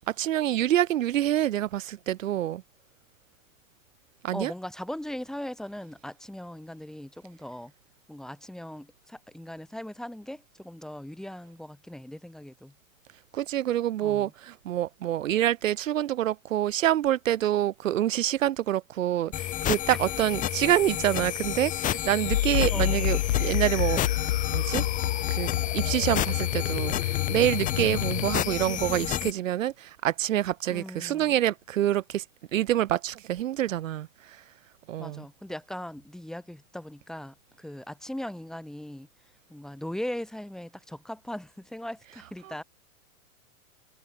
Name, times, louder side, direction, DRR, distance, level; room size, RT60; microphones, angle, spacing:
voice 1, 0.1-2.6 4.2-4.5 13.3-24.0 24.5-24.8 25.3-25.5 25.7-32.2 32.5-34.1 34.9-35.2, right 12 dB, 60° right, 4.1 m, -26 dB
voice 2, 4.3-7.7 8.1-12.7 14.0-14.3 19.9-20.0 22.7-23.2 27.9-28.4 30.7-31.3 35.0-39.1 39.5-42.6, left 1 dB, ahead, 4.7 m, -39 dB
sound 1, 19.3-29.3, left 12 dB, 20° left, 5.2 m, -31 dB
sound 2, 22.3-28.7, left 13 dB, 70° left, 1.2 m, -28 dB
supercardioid pair, 175°, 43 cm